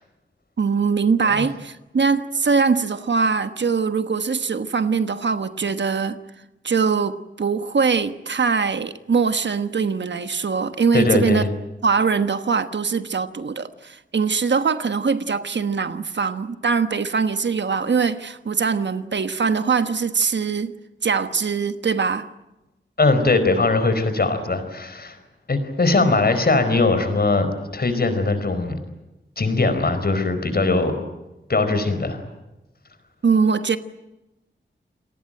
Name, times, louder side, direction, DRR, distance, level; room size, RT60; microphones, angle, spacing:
voice 1, 0.6-6.2 6.6-11.4 11.8-20.7 21.0-22.3 33.2-33.8, right 5 dB, 70° right, 1.3 m, -22 dB
voice 2, 10.9-11.5 23.0-25.2 25.5-28.8 29.4-31.0 31.5-32.2, left 3 dB, 55° left, 4.7 m, -20 dB
29.0 x 19.0 x 9.0 m
wide cardioid pair, 100°, 19 cm